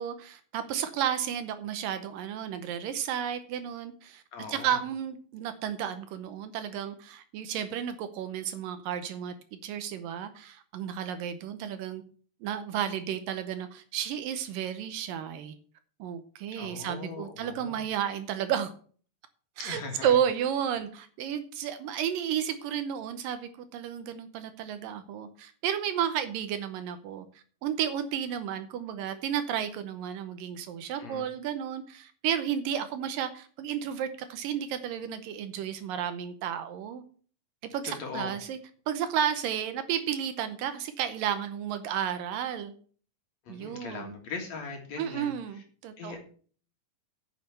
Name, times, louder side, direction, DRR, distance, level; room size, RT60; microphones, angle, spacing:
voice 1, 0.0-4.2 4.5-12.0 12.4-15.5 16.0-18.7 19.6-27.3 27.6-37.0 37.7-38.6 38.9-42.7 43.5-44.1 45.0-46.2, right 9 dB, 75° right, 10 dB, 2.4 m, -32 dB
voice 2, 4.3-4.8 16.5-17.8 19.6-20.2 31.0-31.3 37.8-38.3 43.4-45.6 46.0-46.2, left 4 dB, 55° left, 3 dB, 2.8 m, -40 dB
9.6 x 6.5 x 6.7 m, 0.43 s
omnidirectional pair, 4.3 m